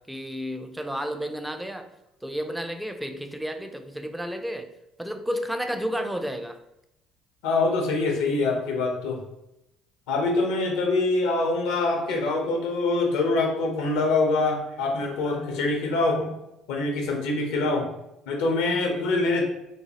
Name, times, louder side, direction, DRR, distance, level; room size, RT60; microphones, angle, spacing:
voice 1, 0.0-1.9 2.2-4.7 5.0-6.6 12.1-12.4, equal, 5° right, 7 dB, 0.3 m, -32 dB
voice 2, 7.4-9.2 10.1-16.4 16.7-17.9 18.3-19.4, left 3 dB, 75° left, 2 dB, 0.6 m, -24 dB
3.0 x 2.1 x 2.8 m, 0.87 s
hypercardioid pair, 65°, 0 cm